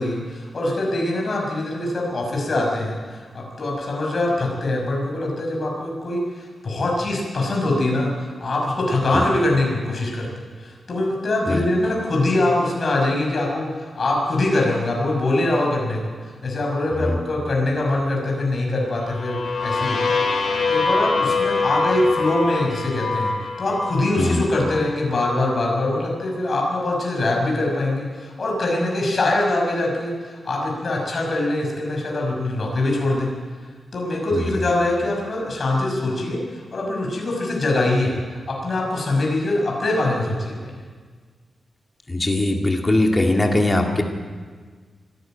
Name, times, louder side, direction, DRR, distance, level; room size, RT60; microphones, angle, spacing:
voice 1, 0.0-10.3 10.6-20.1 20.6-33.3 33.9-36.4 36.7-38.2 38.5-40.7, left 2 dB, 40° left, -1 dB, 6.1 m, -23 dB
sound 1, 19.0-24.8, left 4 dB, 65° left, 3.7 m, -24 dB
voice 2, 42.1-44.0, left 1 dB, 20° left, 2 dB, 2.1 m, -20 dB
25.0 x 12.5 x 9.1 m, 1.6 s
wide cardioid pair, 150°, 0 cm